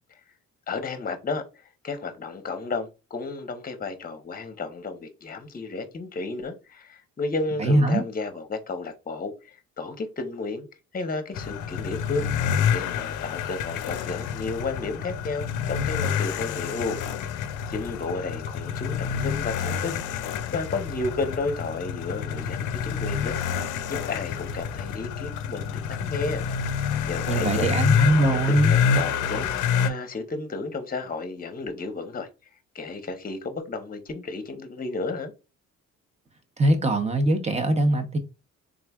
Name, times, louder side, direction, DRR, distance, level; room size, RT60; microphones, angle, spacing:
voice 1, 0.7-1.4 1.8-10.7 10.9-12.3 12.7-17.3 17.7-23.4 23.9-26.4 27.1-27.7 28.5-29.4 29.8-32.3 32.7-35.3, left 3 dB, 30° left, 0.8 m, -32 dB
voice 2, 7.6-8.0 27.3-28.7 36.6-38.2, right 1 dB, 20° right, 0.9 m, -21 dB
sound 1, 11.3-29.9, left 7 dB, 85° left, 0.5 m, -28 dB
3.7 x 3.2 x 2.3 m
cardioid pair, 90°, 30 cm